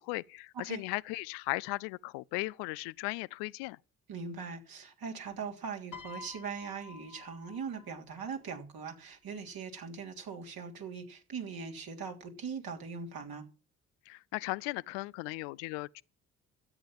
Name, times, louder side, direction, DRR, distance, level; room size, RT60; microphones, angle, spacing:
voice 1, 0.0-3.8 14.1-16.0, left 22 dB, 75° left, 0.6 m, -37 dB
voice 2, 4.1-13.5, right 5 dB, 60° right, 3.3 m, -41 dB
Piano, 5.9-8.3 9.3-9.6, left 4 dB, 50° left, 1.2 m, -50 dB
13.0 x 8.7 x 7.4 m
hypercardioid pair, 45°, 41 cm